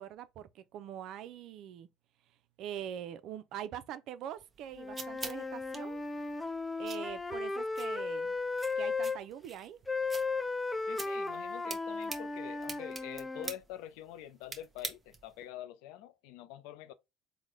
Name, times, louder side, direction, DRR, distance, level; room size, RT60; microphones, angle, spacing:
voice 1, 0.0-1.9 2.6-6.0 6.8-8.4 8.8-9.8, right 10 dB, 65° right, 0.4 m, -43 dB
sound 1, 4.4-15.4, right 4 dB, 25° right, 0.8 m, -47 dB
Wind instrument woodwind instrument, 4.7-9.2 9.9-13.5, left 3 dB, 10° left, 0.4 m, -35 dB
voice 2, 10.8-16.9, left 11 dB, 80° left, 0.4 m, -46 dB
3.7 x 2.1 x 3.1 m
supercardioid pair, 95°, 0 cm